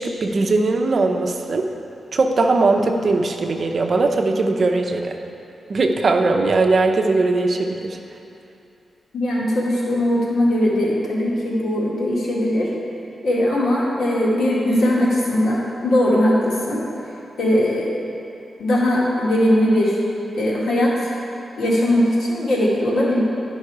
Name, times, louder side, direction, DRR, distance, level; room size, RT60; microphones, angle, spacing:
voice 1, 0.0-1.7 2.1-5.2 5.7-8.0, right 3 dB, 50° right, 3 dB, 0.6 m, -19 dB
voice 2, 9.1-12.7 13.2-16.8 17.4-18.0 18.6-20.0 20.4-20.9 21.6-23.2, left 1 dB, 80° left, -6 dB, 2.0 m, -19 dB
10.5 x 5.4 x 4.8 m, 2.7 s
wide cardioid pair, 120°, 0 cm